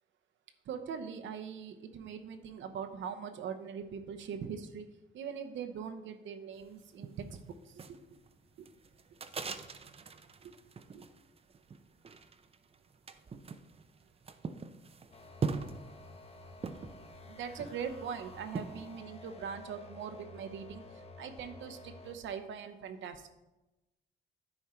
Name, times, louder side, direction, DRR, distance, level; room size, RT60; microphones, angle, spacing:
voice 1, 0.7-4.9 5.1-8.0 8.6-8.7 10.4-10.5 10.9-11.1 17.0-20.8 21.2-23.3, right 7 dB, 70° right, 7 dB, 0.8 m, -42 dB
sound 1, 6.6-19.0, right 5 dB, 30° right, 0.5 m, -43 dB
sound 2, 15.1-22.2, left 2 dB, 30° left, 0.9 m, -52 dB
9.7 x 4.5 x 4.4 m, 1.0 s
cardioid pair, 90°, 20 cm